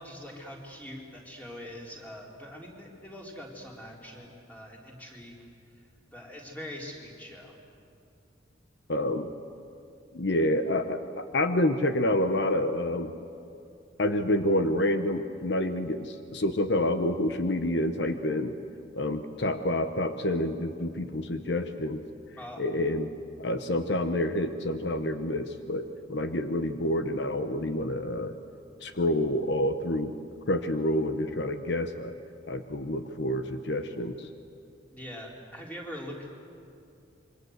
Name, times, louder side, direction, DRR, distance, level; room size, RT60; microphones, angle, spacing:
voice 1, 0.0-5.3 6.1-7.6 22.4-22.6 34.9-36.3, equal, 10° left, -2 dB, 3.8 m, -43 dB
voice 2, 8.9-9.3 10.1-13.1 14.0-18.5 18.9-22.0 22.6-23.1 23.4-28.3 28.8-30.1 30.5-32.1 32.5-34.3, left 1 dB, 65° left, 8 dB, 1.0 m, -28 dB
27.0 x 24.0 x 8.0 m, 2.6 s
head